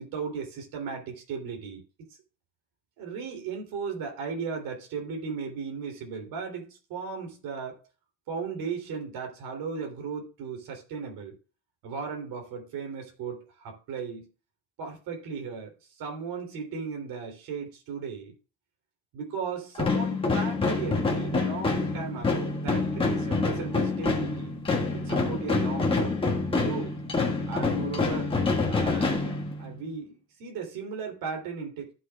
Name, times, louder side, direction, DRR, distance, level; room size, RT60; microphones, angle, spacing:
voice 1, 0.0-1.8 3.0-7.8 8.3-11.3 11.8-14.3 14.8-18.3 19.1-24.5 24.9-26.9 27.5-28.3 28.6-31.9, right 5 dB, 65° right, 3.1 m, -36 dB
sound 1, 19.7-29.9, left 3 dB, 15° left, 1.6 m, -27 dB
14.5 x 6.3 x 2.3 m
cardioid pair, 165°, 37 cm